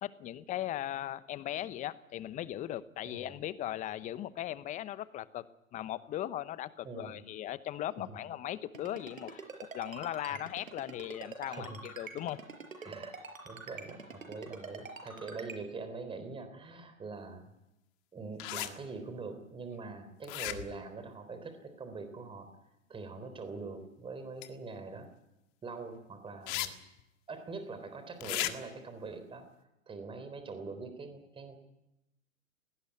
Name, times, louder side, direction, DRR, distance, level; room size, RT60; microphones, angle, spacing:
voice 1, 0.0-5.4 5.7-9.4 9.7-12.4, left 12 dB, 20° left, 17 dB, 0.8 m, -38 dB
voice 2, 3.0-3.4 6.8-7.2 8.1-8.2 9.9-10.1 11.4-11.8 12.8-13.1 13.4-17.5 18.1-22.5 22.9-25.1 25.6-26.7 27.3-29.5 29.9-31.6, right 4 dB, 15° right, 9 dB, 3.6 m, -43 dB
Ringtone, 8.7-15.6, right 5 dB, 80° right, 5.4 m, -44 dB
sound 1, 18.4-18.7 20.2-20.8 24.4-24.5 26.5-26.7 27.0-27.1 28.2-28.5, left 16 dB, 35° left, 1.8 m, -35 dB
19.5 x 18.5 x 9.5 m, 0.92 s
figure-of-eight pair, 115°, 40 cm